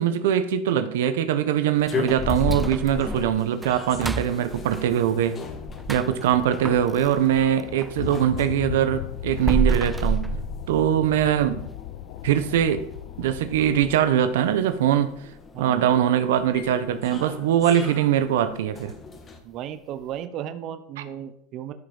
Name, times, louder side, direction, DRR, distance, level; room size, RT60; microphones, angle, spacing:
voice 1, 0.0-5.4 5.9-10.3 10.7-11.7 12.2-12.9 13.2-15.2 15.6-18.9, right 10 dB, 85° right, 11 dB, 1.0 m, -22 dB
sound 1, 1.7-19.4, left 4 dB, 25° left, 1.7 m, -38 dB
sound 2, 2.1-8.0 8.4-11.2 11.6-11.7 12.2-12.3 12.8-13.1 13.4-13.5 14.1-14.2, right 3 dB, 5° right, 0.3 m, -31 dB
sound 3, 5.4-14.0, left 15 dB, 70° left, 0.5 m, -37 dB
voice 2, 15.5-16.3 19.4-21.7, right 10 dB, 45° right, 11 dB, 0.9 m, -35 dB
13.0 x 5.8 x 5.5 m, 0.73 s
supercardioid pair, 125°, 0 cm